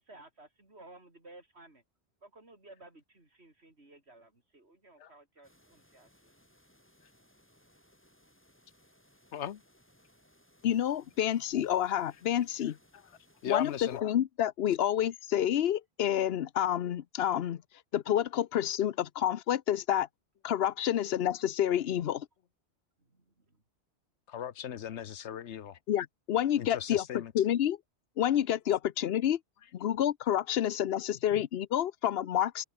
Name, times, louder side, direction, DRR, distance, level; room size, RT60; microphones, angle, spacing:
voice 1, 0.0-1.8 2.2-6.3 23.0-23.6, right 2 dB, 70° right, 5.3 m, -56 dB
sound 1, 5.4-14.0, equal, 10° left, 6.1 m, -65 dB
voice 2, 10.6-12.8 13.5-17.6 17.9-20.1 20.4-22.3 25.9-27.8 28.2-29.4 29.7-32.6, left 10 dB, 65° left, 0.9 m, -29 dB
voice 3, 13.4-14.0 24.3-25.8 26.6-27.3, left 9 dB, 85° left, 1.2 m, -37 dB
open air
omnidirectional pair, 1.1 m